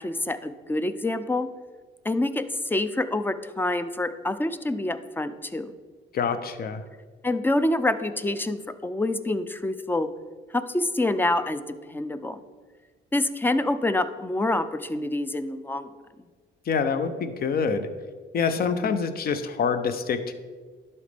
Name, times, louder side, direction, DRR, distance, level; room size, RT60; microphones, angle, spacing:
voice 1, 0.0-1.5 2.0-5.7 7.2-10.1 10.5-11.6 11.9-12.4 13.1-15.9 18.8-18.9, left 2 dB, 10° left, 12 dB, 0.4 m, -26 dB
voice 2, 6.1-6.8 16.7-17.9 18.3-20.3, left 6 dB, 50° left, 10 dB, 0.6 m, -26 dB
11.5 x 4.2 x 3.4 m, 1.5 s
cardioid pair, 90°, 20 cm